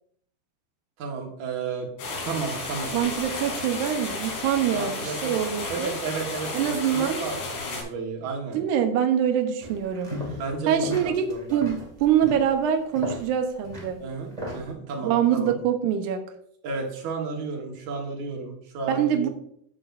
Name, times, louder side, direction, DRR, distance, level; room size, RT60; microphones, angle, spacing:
voice 1, 1.0-1.9 2.2-2.9 4.7-5.3 5.7-8.6 10.4-11.6 14.0-15.6 16.6-19.3, right 4 dB, 55° right, 0 dB, 2.6 m, -33 dB
sound 1, 2.0-7.8, left 3 dB, 85° left, 4.9 m, -33 dB
voice 2, 2.9-5.9 6.5-7.2 8.5-10.1 10.7-14.0 15.0-16.2 18.9-19.3, right 9 dB, 75° right, 6 dB, 1.9 m, -24 dB
sound 2, 9.6-10.5 10.8-14.7, left 1 dB, 20° right, 0.9 m, -36 dB
14.0 x 6.0 x 2.6 m, 0.66 s
omnidirectional pair, 4.6 m